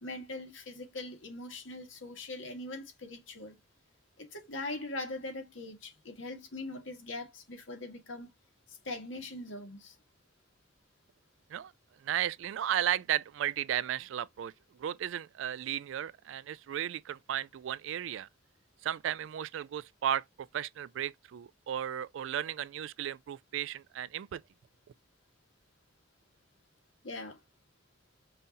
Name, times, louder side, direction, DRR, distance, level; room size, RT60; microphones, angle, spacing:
voice 1, 0.0-3.6 4.2-8.3 8.7-10.0 27.0-27.4, left 2 dB, 80° left, 1.6 m, -41 dB
voice 2, 12.0-14.5 14.8-18.3 18.8-20.2 20.5-24.4, right 10 dB, 75° right, 0.3 m, -34 dB
5.6 x 2.7 x 2.5 m
head